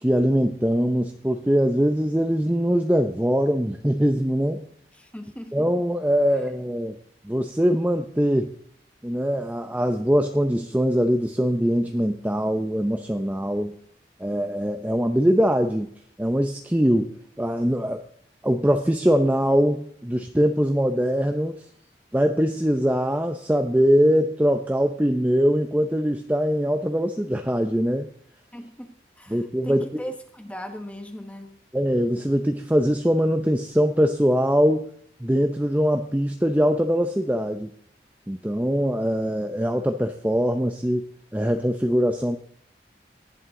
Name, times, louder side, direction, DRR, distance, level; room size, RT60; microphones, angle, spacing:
voice 1, 0.0-4.6 5.5-7.0 7.2-8.5 9.0-13.7 14.2-15.9 16.2-18.0 18.4-21.6 22.1-28.1 29.3-30.0 31.7-34.9 35.2-37.7 38.3-41.1 41.3-42.4, equal, 10° right, 6 dB, 0.6 m, -22 dB
voice 2, 5.0-5.7 28.5-31.6, equal, 5° left, 6 dB, 1.4 m, -38 dB
18.5 x 11.0 x 3.8 m, 0.65 s
head